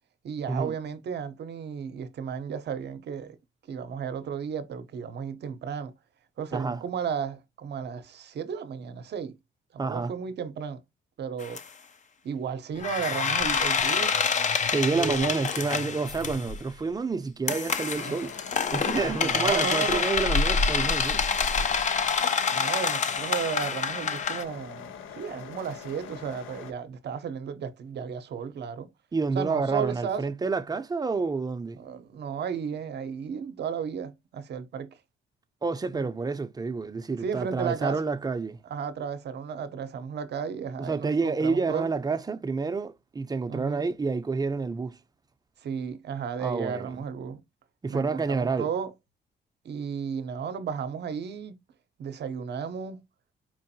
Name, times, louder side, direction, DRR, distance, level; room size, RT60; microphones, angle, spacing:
voice 1, 0.2-3.4 3.7-5.9 6.4-9.3 9.7-10.8 11.2-11.6 12.2-14.4 14.8-15.4 18.0-18.1 18.7-20.1 22.5-28.9 29.3-30.3 31.8-35.0 35.9-36.1 37.2-38.0 38.7-41.9 43.5-43.8 45.6-47.4 47.9-48.9 49.6-51.6 52.0-53.0, right 7 dB, 60° right, 0.7 m, -34 dB
voice 2, 6.5-6.8 9.8-10.1 14.6-18.3 18.7-21.3 29.1-31.8 35.6-38.6 40.8-45.0 46.4-47.0 47.8-48.7, right 4 dB, 20° right, 0.6 m, -29 dB
sound 1, 11.4-11.6 12.8-16.6 17.5-24.4, left 6 dB, 40° left, 0.5 m, -27 dB
sound 2, 18.0-26.7, left 7 dB, 85° left, 0.7 m, -43 dB
4.6 x 2.5 x 2.7 m
cardioid pair, 90°, 20 cm